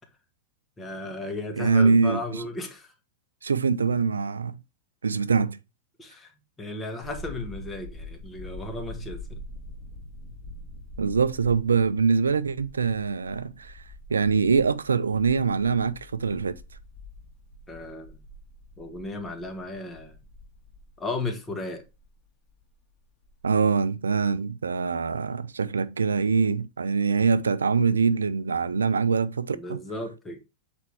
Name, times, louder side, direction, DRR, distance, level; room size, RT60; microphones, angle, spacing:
voice 1, 0.8-2.9 6.0-6.3 6.6-9.4 17.7-18.2 18.8-20.2 21.0-21.8 29.5-30.4, left 2 dB, 15° left, 1.8 m, -35 dB
voice 2, 1.6-2.4 3.4-4.5 5.0-5.6 11.0-13.8 14.1-16.6 23.4-29.8, right 5 dB, 75° right, 0.5 m, -24 dB
sound 1, 7.0-22.7 23.1-23.6, left 1 dB, 30° left, 2.3 m, -44 dB
7.9 x 4.5 x 3.5 m
figure-of-eight pair, 90°, 0 cm